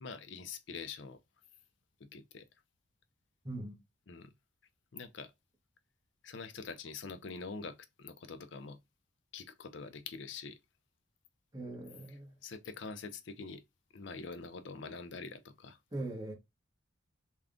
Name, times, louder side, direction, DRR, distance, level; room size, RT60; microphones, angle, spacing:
voice 1, 0.0-1.2 2.1-2.4 4.1-4.3 4.9-5.3 6.2-8.8 9.3-10.6 12.1-13.6 13.9-15.8, left 4 dB, 60° left, 0.5 m, -45 dB
voice 2, 3.4-3.8 11.5-12.3 15.9-16.3, right 2 dB, 20° right, 1.1 m, -41 dB
3.5 x 2.3 x 3.6 m
head